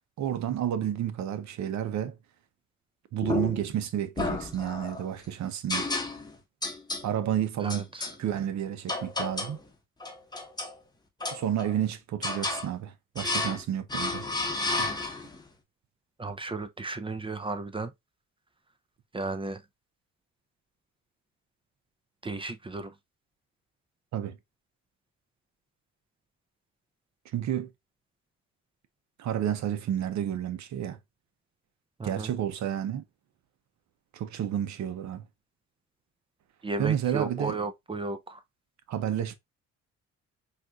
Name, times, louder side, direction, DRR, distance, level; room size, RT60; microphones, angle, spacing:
voice 1, 0.2-2.2 3.1-5.9 7.0-7.9 8.2-9.6 11.3-14.3 14.8-14.9 24.1-24.4 27.3-27.7 29.2-31.0 32.0-33.0 34.1-35.2 36.8-37.6 38.9-39.4, right 10 dB, 65° right, 0.7 m, -30 dB
sound 1, 3.2-3.8 4.2-5.0 5.7-6.3 6.6-7.1 7.7-8.2 8.9-9.6 10.0-10.8 11.2-11.8 12.2-12.7 13.2-13.6 13.9-15.4, left 2 dB, 15° left, 0.9 m, -32 dB
voice 2, 7.6-8.1 16.2-17.9 19.1-19.6 22.2-22.9 32.0-32.3 36.6-38.4, right 3 dB, 20° right, 0.4 m, -34 dB
4.1 x 2.4 x 2.3 m
cardioid pair, 90°, 30 cm